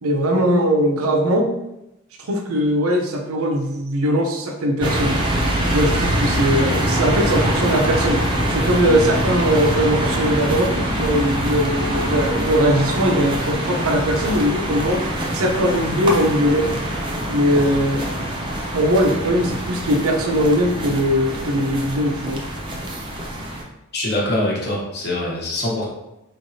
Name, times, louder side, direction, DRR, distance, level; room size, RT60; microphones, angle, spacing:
voice 1, 0.0-1.5 2.2-5.2 5.7-15.0 15.3-16.7 17.3-18.1 18.7-22.4, equal, 85° right, 2 dB, 0.7 m, -20 dB
sound 1, 4.8-23.6, right 1 dB, 20° right, 0.5 m, -24 dB
voice 2, 23.9-25.9, left 1 dB, 50° left, -3 dB, 1.0 m, -23 dB
4.2 x 3.3 x 2.7 m, 0.90 s
head